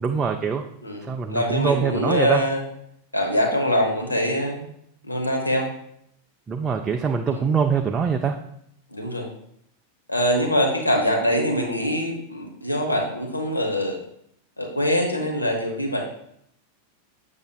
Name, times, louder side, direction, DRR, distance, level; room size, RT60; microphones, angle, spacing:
voice 1, 0.0-0.6 1.1-2.4 6.5-8.4, right 6 dB, 20° right, 4 dB, 0.4 m, -23 dB
voice 2, 0.8-2.6 3.1-4.7 5.0-5.7 7.3-7.5 8.9-9.3 10.1-14.0 14.6-16.0, equal, 85° left, 0 dB, 0.9 m, -24 dB
7.1 x 6.6 x 2.3 m, 0.73 s
figure-of-eight pair, 90°, 0 cm